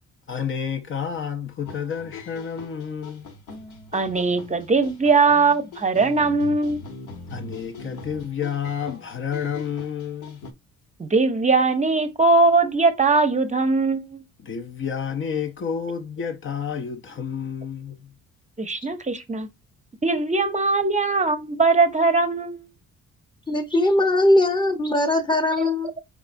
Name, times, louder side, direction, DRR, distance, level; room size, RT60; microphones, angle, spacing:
voice 1, 0.3-3.3 7.3-10.4 14.4-18.1, left 7 dB, 40° left, 0.6 m, -30 dB
sound 1, 1.6-10.5, left 3 dB, 75° left, 1.1 m, -41 dB
voice 2, 3.9-6.8 11.0-14.2 18.6-19.5 20.0-22.7, right 3 dB, 25° right, 0.7 m, -20 dB
voice 3, 23.5-25.9, left 1 dB, 15° left, 0.9 m, -20 dB
4.8 x 3.4 x 2.6 m
cardioid pair, 90°, 30 cm